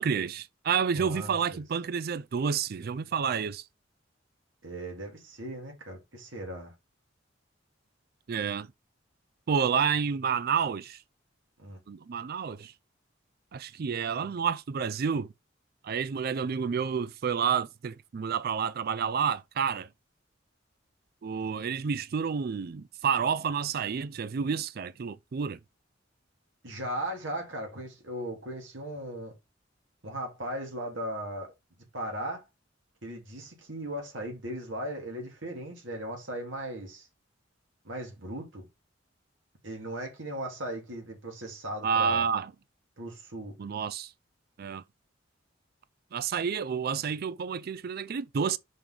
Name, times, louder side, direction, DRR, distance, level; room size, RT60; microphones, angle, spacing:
voice 1, 0.0-3.6 8.3-8.7 9.5-11.0 11.9-12.7 13.5-15.3 15.8-19.9 21.2-25.6 41.8-42.5 43.6-44.1 44.6-44.8 46.1-48.6, right 6 dB, 55° right, 0.4 m, -29 dB
voice 2, 0.9-1.6 4.6-6.7 11.6-11.8 26.6-29.3 30.0-31.5 31.9-32.5 33.0-37.1 37.8-38.6 39.6-42.3 43.0-43.5, right 1 dB, 90° right, 2.3 m, -37 dB
6.0 x 5.2 x 3.7 m
head